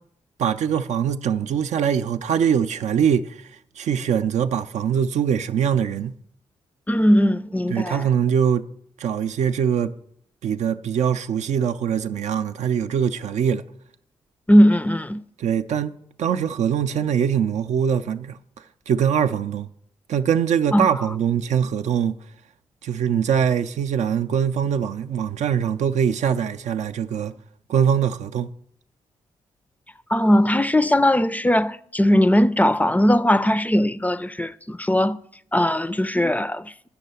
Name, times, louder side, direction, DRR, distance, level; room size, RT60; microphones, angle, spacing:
voice 1, 0.4-3.5 3.8-6.1 7.7-8.6 9.0-9.9 10.4-13.6 15.4-18.4 18.9-19.7 20.1-22.2 22.8-27.3 27.7-28.5, right 8 dB, 70° right, 0.5 m, -22 dB
voice 2, 6.9-8.1 14.5-15.2 20.7-21.0 30.1-35.2 35.5-36.7, equal, 10° left, 0.4 m, -19 dB
8.3 x 5.6 x 6.8 m
supercardioid pair, 45°, 12 cm